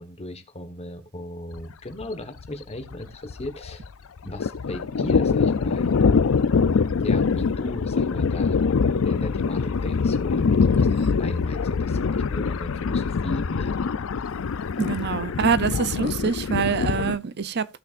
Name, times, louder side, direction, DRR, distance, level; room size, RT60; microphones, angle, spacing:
voice 1, 0.0-3.9 4.2-5.9 7.0-8.6 9.0-13.8, left 1 dB, 30° left, 1.4 m, -36 dB
Thunder, 1.6-1.7 2.0-2.1 2.4-3.9 4.2-17.2, left 5 dB, 70° left, 0.5 m, -23 dB
voice 2, 14.8-17.7, right 6 dB, 55° right, 0.6 m, -25 dB
16.0 x 5.9 x 2.5 m
head